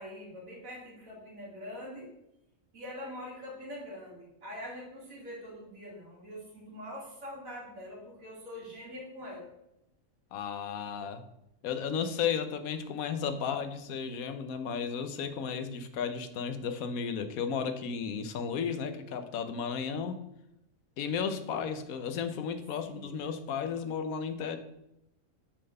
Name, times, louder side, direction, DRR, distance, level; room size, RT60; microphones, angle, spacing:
voice 1, 0.0-2.1 2.7-9.5 22.8-23.2, left 1 dB, 75° right, -4 dB, 2.3 m, -44 dB
voice 2, 10.3-11.2 11.6-20.2 21.0-24.6, left 6 dB, 90° left, 9 dB, 1.2 m, -34 dB
6.4 x 3.9 x 5.3 m, 0.83 s
omnidirectional pair, 1.4 m